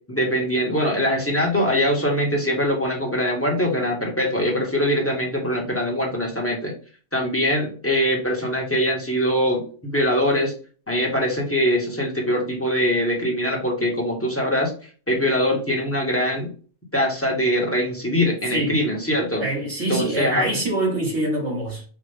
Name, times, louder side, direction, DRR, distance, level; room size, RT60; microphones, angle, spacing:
voice 1, 0.1-6.7 7.1-10.5 10.9-14.7 15.1-16.5 16.9-19.4 19.9-20.5, equal, 15° left, 1.1 m, -22 dB
voice 2, 19.4-21.8, right 1 dB, 85° right, 2.3 m, -24 dB
5.4 x 2.4 x 3.4 m
omnidirectional pair, 1.1 m